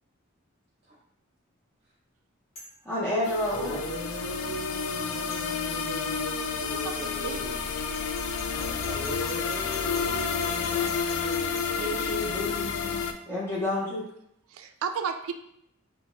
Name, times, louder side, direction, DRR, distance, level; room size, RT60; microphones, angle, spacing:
sound 1, 2.6-2.8 5.3-5.5 7.9-11.7, equal, 30° left, 1.1 m, -46 dB
voice 1, 2.8-3.8 10.5-11.0 11.7-14.0, left 1 dB, 10° left, -10 dB, 0.6 m, -31 dB
sound 2, 3.2-13.1, left 6 dB, 85° left, 0.3 m, -30 dB
sound 3, 3.5-7.7 8.9-13.0, right 1 dB, 65° left, 0.7 m, -39 dB
voice 2, 6.6-7.6 11.9-12.1 14.5-15.3, right 6 dB, 75° right, 8 dB, 0.3 m, -34 dB
voice 3, 8.5-10.8, right 1 dB, 50° right, -8 dB, 0.7 m, -47 dB
2.8 x 2.1 x 3.1 m, 0.75 s
head